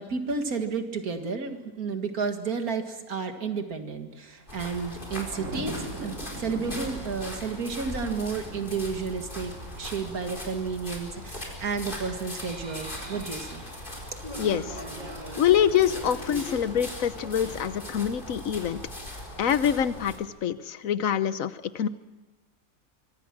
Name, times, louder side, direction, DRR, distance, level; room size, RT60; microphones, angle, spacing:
voice 1, 0.0-13.7, right 5 dB, 80° right, 6 dB, 2.4 m, -32 dB
sound 1, 4.3-10.6 11.6-13.2, right 2 dB, 55° right, 2.7 m, -43 dB
sound 2, 4.5-20.2, left 1 dB, 35° left, 4.6 m, -40 dB
sound 3, 12.4-18.2, right 1 dB, 30° right, 1.8 m, -42 dB
voice 2, 14.4-14.8 15.4-18.8 19.4-21.9, left 9 dB, 65° left, 13 dB, 1.3 m, -25 dB
24.5 x 24.0 x 6.1 m, 1.1 s
omnidirectional pair, 1.5 m